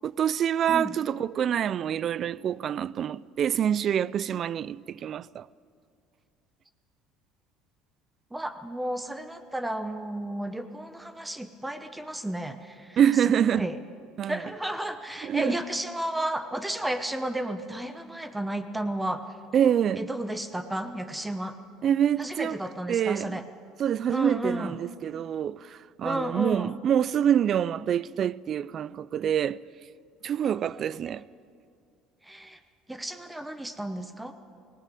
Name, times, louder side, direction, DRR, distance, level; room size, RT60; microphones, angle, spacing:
voice 1, 0.0-5.5 13.0-13.7 14.2-14.4 15.2-15.5 19.5-20.1 21.8-22.6 22.9-23.4 23.8-29.6 30.2-31.2, right 9 dB, 45° right, 0.4 m, -26 dB
voice 2, 8.3-13.8 14.3-19.4 20.0-21.6 22.2-23.4 24.1-24.8 26.0-26.7 30.4-31.2 32.2-32.6 32.9-34.3, right 1 dB, 10° right, 1.1 m, -33 dB
18.5 x 17.5 x 8.4 m
supercardioid pair, 95°, 0 cm